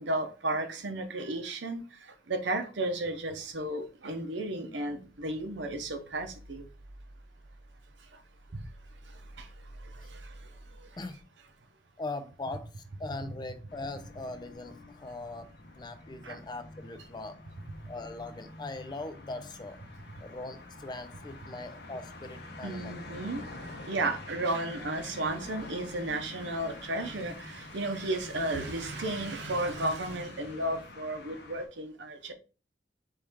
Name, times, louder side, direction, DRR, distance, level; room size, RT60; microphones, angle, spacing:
voice 1, 0.0-6.6 8.5-8.6 9.1-9.5 9.8-10.5 10.8-10.9 16.2-16.4 22.6-32.3, right 2 dB, 75° right, 0.8 m, -34 dB
voice 2, 11.0-11.3 12.0-15.5 15.8-17.4 17.9-19.8 20.2-23.0, left 2 dB, 25° left, 0.5 m, -40 dB
sound 1, 13.7-31.7, left 2 dB, 60° left, 0.9 m, -47 dB
4.4 x 3.2 x 3.5 m
head